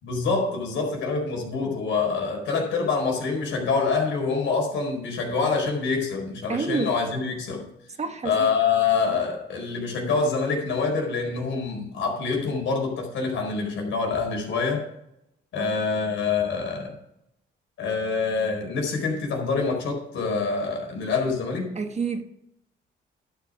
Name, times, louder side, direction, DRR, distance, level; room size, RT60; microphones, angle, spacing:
voice 1, 0.0-7.7 8.2-14.9 15.5-16.9 17.8-21.8, left 4 dB, 80° left, 4.4 m, -26 dB
voice 2, 6.5-6.9 8.0-8.5 15.6-15.7 21.7-22.2, right 4 dB, 35° right, 1.4 m, -28 dB
11.5 x 7.4 x 5.0 m
cardioid pair, 90°, 20 cm